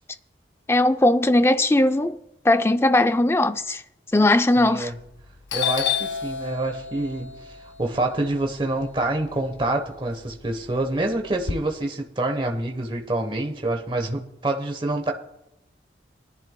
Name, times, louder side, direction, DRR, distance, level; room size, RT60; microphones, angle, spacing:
voice 1, 0.7-2.2 2.4-3.8 4.1-4.9, left 1 dB, 15° left, 0.4 m, -19 dB
voice 2, 4.6-5.0 5.5-7.3 7.8-15.1, right 2 dB, 25° right, 1.0 m, -26 dB
Doorbell, 4.9-5.2 5.5-9.6 10.0-11.5, left 8 dB, 85° left, 0.7 m, -30 dB
22.5 x 11.0 x 2.2 m
head